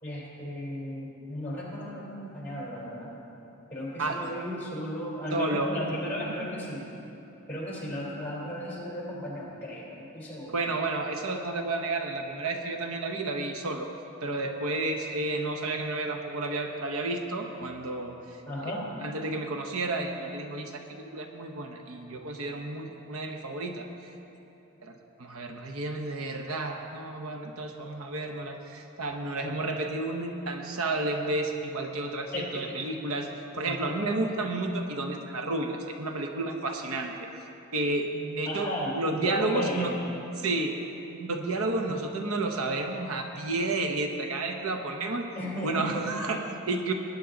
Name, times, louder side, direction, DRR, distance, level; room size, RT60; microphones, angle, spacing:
voice 1, 0.0-3.1 3.7-6.8 7.5-10.6 18.4-18.9 29.4-29.5 32.3-32.7 33.6-34.0 38.4-39.9 45.3-46.0, equal, 10° left, -6 dB, 3.3 m, -35 dB
voice 2, 5.3-5.7 10.5-13.9 14.2-18.2 18.6-18.7 19.0-24.1 24.8-33.3 33.5-37.3 37.7-39.9 40.4-40.7 41.1-45.3 45.6-46.9, right 2 dB, 75° right, 4 dB, 0.9 m, -31 dB
19.5 x 9.3 x 3.8 m, 2.9 s
head